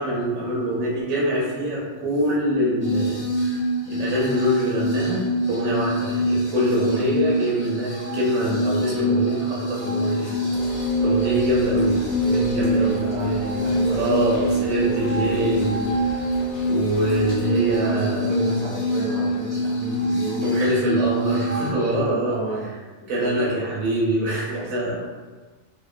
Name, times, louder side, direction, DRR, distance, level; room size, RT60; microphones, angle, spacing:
voice 1, 0.0-3.6 3.9-12.1 12.5-16.3 16.7-18.3 20.4-22.4 23.1-25.0, right 1 dB, 85° right, -5 dB, 1.0 m, -25 dB
sound 1, 2.8-21.7, equal, 40° left, 1.1 m, -25 dB
Rain, 10.5-17.8, equal, 75° left, 1.0 m, -34 dB
voice 2, 12.2-15.6 17.8-20.6 21.7-22.7 23.2-23.5 24.5-24.9, right 1 dB, 65° right, -1 dB, 0.7 m, -32 dB
2.8 x 2.0 x 2.3 m, 1.3 s
omnidirectional pair, 1.4 m